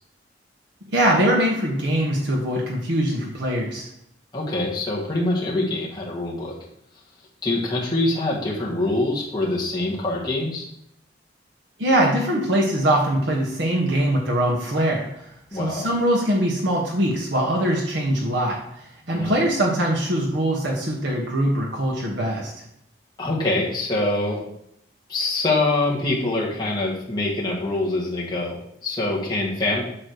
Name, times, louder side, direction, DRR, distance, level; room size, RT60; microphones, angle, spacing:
voice 1, 0.9-3.9 11.8-22.5, right 1 dB, 70° right, -2 dB, 1.3 m, -22 dB
voice 2, 4.3-6.5 7.4-10.7 15.5-15.9 19.1-19.5 23.2-24.4 25.1-29.8, left 2 dB, 20° left, -4 dB, 1.8 m, -24 dB
8.7 x 3.1 x 6.6 m, 0.77 s
head